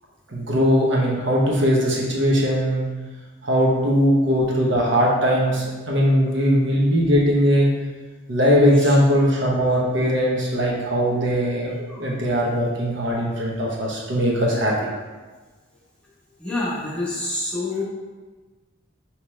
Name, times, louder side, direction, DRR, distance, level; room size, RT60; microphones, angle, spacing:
voice 1, 0.3-2.8 3.4-7.7 8.3-14.7, equal, 65° right, -4 dB, 0.9 m, -20 dB
voice 2, 16.4-17.8, left 2 dB, 5° left, -7 dB, 0.9 m, -27 dB
4.8 x 3.0 x 3.1 m, 1.3 s
head